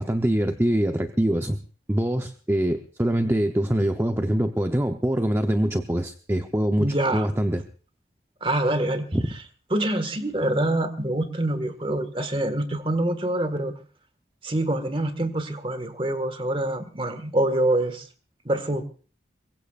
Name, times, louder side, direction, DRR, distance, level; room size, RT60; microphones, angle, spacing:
voice 1, 0.0-1.6 1.9-7.6 9.1-9.3, right 1 dB, 15° right, 5 dB, 0.8 m, -24 dB
voice 2, 6.8-7.3 8.4-9.1 9.7-13.7 14.4-18.1 18.4-18.9, right 1 dB, 30° right, 9 dB, 1.7 m, -25 dB
23.0 x 22.5 x 2.5 m, 0.40 s
head